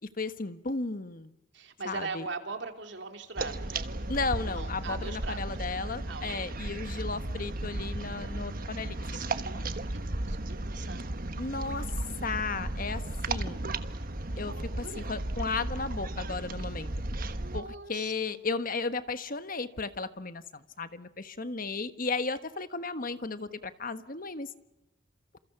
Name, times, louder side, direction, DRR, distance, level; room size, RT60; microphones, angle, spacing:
voice 1, 0.2-1.3 1.8-2.3 4.1-9.3 11.4-11.9 12.2-13.0 13.3-13.6 14.4-16.9 17.5-24.5, left 4 dB, 45° left, 11 dB, 1.3 m, -34 dB
voice 2, 1.5-3.9 4.4-5.4 6.1-6.4 9.0-11.0 14.4-15.2 17.4-18.4, right 4 dB, 65° right, 6 dB, 3.2 m, -41 dB
sound 1, 3.4-17.6, right 2 dB, 50° right, 1.3 m, -35 dB
29.0 x 28.0 x 6.0 m, 0.93 s
head